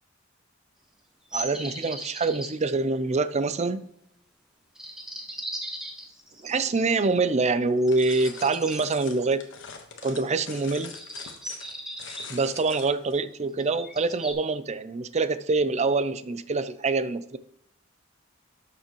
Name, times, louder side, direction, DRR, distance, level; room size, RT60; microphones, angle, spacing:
sound 1, 1.3-2.5 4.8-7.0 7.8-8.8 10.1-10.4 10.9-12.3 13.6-14.3, equal, 5° right, 1.4 m, -38 dB
voice 1, 1.3-3.9 6.4-9.4 10.0-10.9 12.3-17.4, right 3 dB, 35° right, 13 dB, 0.5 m, -25 dB
sound 2, 7.9-13.2, left 6 dB, 65° left, 1.3 m, -44 dB
12.0 x 6.9 x 3.1 m, 0.75 s
head